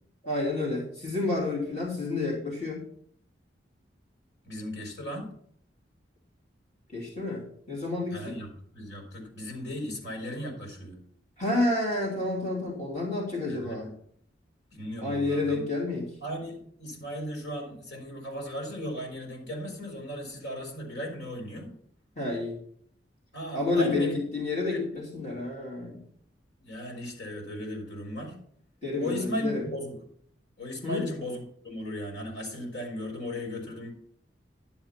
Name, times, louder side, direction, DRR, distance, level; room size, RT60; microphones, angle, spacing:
voice 1, 0.2-2.9 6.9-8.4 11.4-13.9 15.0-16.1 22.2-22.6 23.5-26.0 28.8-29.6 30.8-31.1, left 2 dB, 40° left, -3 dB, 2.9 m, -29 dB
voice 2, 4.4-5.3 8.1-8.5 8.7-11.0 13.5-13.9 14.7-15.6 16.2-21.7 23.3-24.1 24.7-24.9 26.6-28.4 29.0-30.0 30.6-33.9, equal, 80° left, 1 dB, 5.3 m, -36 dB
12.5 x 7.3 x 5.8 m, 0.62 s
head